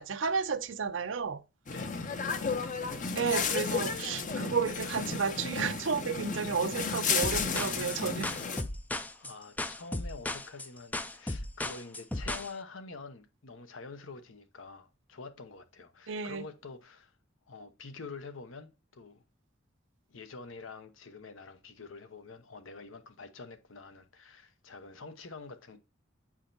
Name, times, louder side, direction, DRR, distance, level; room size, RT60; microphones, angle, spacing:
voice 1, 0.0-1.4 3.2-8.3 16.1-16.4, right 5 dB, 65° right, 0.6 m, -32 dB
voice 2, 1.7-2.1 9.2-17.1 17.5-19.2 20.1-25.8, left 4 dB, 80° left, 0.9 m, -47 dB
sound 1, 1.7-8.6, left 5 dB, 40° left, 0.6 m, -33 dB
sound 2, 7.2-12.5, left 2 dB, 10° left, 0.3 m, -36 dB
8.7 x 4.9 x 2.6 m
head